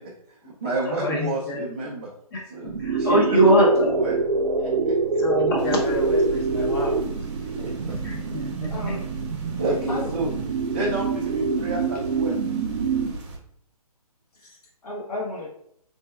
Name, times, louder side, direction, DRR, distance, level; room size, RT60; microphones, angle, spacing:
voice 1, 0.0-2.1 2.5-2.7 3.0-4.1 4.6-5.0 7.6-8.0 9.6-10.3 10.7-12.4, right 2 dB, 15° right, -6 dB, 0.3 m, -29 dB
voice 2, 0.9-1.6 2.3-4.1 5.2-6.9 8.0-8.7, right 1 dB, 40° left, -2 dB, 0.7 m, -23 dB
sound 1, 2.6-13.1, right 3 dB, 90° right, 0.5 m, -25 dB
sound 2, 5.6-13.4, right 2 dB, 45° right, 0.8 m, -38 dB
voice 3, 8.7-9.1 9.9-10.1 14.3-15.5, left 2 dB, 70° left, -4 dB, 1.0 m, -33 dB
3.2 x 3.0 x 2.2 m, 0.70 s
hypercardioid pair, 155°, 20 cm